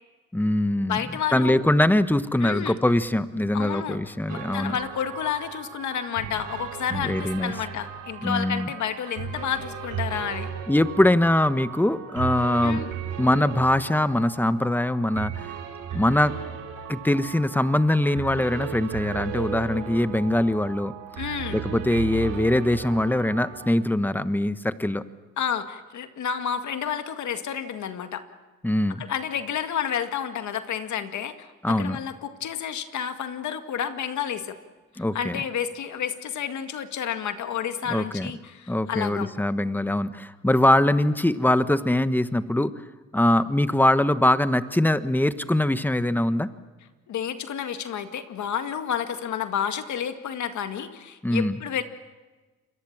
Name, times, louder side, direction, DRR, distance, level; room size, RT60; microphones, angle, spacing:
voice 1, 0.3-1.0 1.3-4.8 6.9-7.5 8.2-8.7 10.7-12.8 13.2-15.5 15.9-16.4 16.9-20.9 21.5-25.0 28.6-29.0 31.6-32.0 35.0-35.4 37.8-38.3 38.7-42.7 43.1-46.5 51.2-51.6, left 1 dB, 5° left, 12 dB, 1.2 m, -22 dB
voice 2, 0.9-1.6 2.4-2.8 3.5-4.0 4.3-10.5 12.6-12.9 21.2-21.6 25.4-28.2 29.0-34.6 35.0-39.3 47.1-51.8, left 8 dB, 70° left, 8 dB, 2.1 m, -30 dB
sound 1, 4.3-23.7, right 8 dB, 90° right, 3.7 m, -36 dB
28.0 x 22.5 x 7.4 m, 1.3 s
cardioid pair, 90°, 30 cm